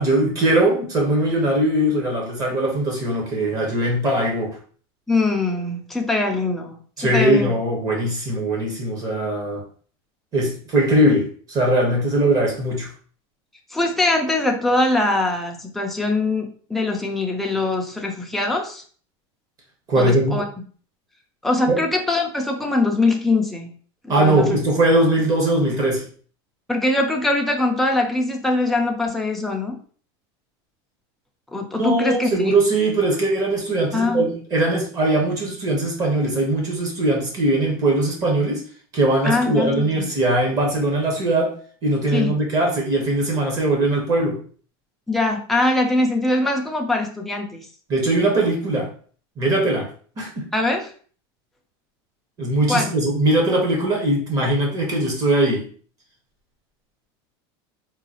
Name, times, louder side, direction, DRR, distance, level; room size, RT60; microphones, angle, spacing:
voice 1, 0.0-4.6 7.0-9.6 10.3-12.9 19.9-20.4 21.7-21.8 24.1-26.1 31.8-38.6 38.9-44.4 47.9-48.9 49.4-49.9 50.2-50.5 52.4-55.7, right 1 dB, 25° right, -1 dB, 1.1 m, -20 dB
voice 2, 5.1-7.5 13.7-18.8 20.0-20.4 21.4-23.7 24.1-24.6 26.7-29.8 31.5-32.5 33.9-34.2 39.2-40.1 42.1-42.3 45.1-47.7 50.5-50.9 52.7-52.9, left 2 dB, ahead, 1 dB, 0.4 m, -22 dB
3.8 x 2.3 x 2.9 m, 0.43 s
supercardioid pair, 165°, 13 cm